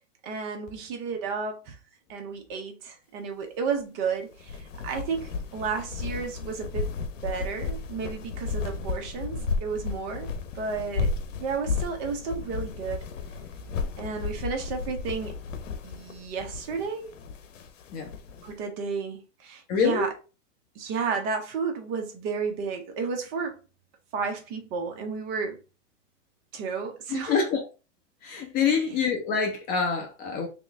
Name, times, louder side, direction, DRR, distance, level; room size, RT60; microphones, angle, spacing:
voice 1, 0.2-1.8 2.1-6.9 7.2-10.3 10.5-11.1 11.4-13.0 14.0-15.4 15.8-17.1 18.4-20.1 20.8-23.6 24.1-25.6 26.5-27.3 28.7-29.0, right 5 dB, 30° right, 0.7 m, -32 dB
sound 1, 4.3-18.5, left 4 dB, 75° left, 0.8 m, -34 dB
voice 2, 19.7-20.1 27.1-27.6 28.2-30.5, left 6 dB, 25° left, 0.6 m, -26 dB
3.2 x 2.9 x 3.5 m
hypercardioid pair, 145°, 38 cm